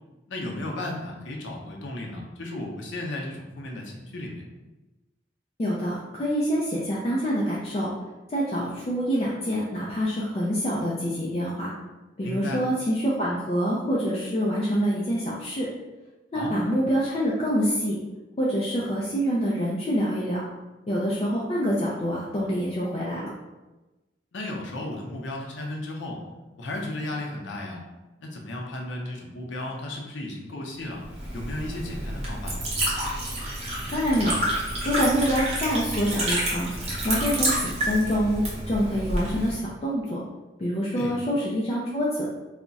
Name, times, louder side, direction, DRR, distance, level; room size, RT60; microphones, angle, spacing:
voice 1, 0.3-4.4 12.2-12.6 16.3-16.5 24.3-26.2 26.6-27.8 28.2-31.0 31.3-32.7 40.9-41.1, left 1 dB, 85° left, 0 dB, 0.6 m, -34 dB
voice 2, 5.6-7.9 8.3-11.7 12.2-15.7 16.3-18.0 18.4-20.5 20.9-23.3 33.9-34.5 34.8-36.7 37.0-40.2 40.6-42.3, equal, 35° left, -6 dB, 0.4 m, -26 dB
Liquid, 31.0-39.5, right 1 dB, 35° right, 0.7 m, -29 dB
2.3 x 2.1 x 3.9 m, 1.1 s
head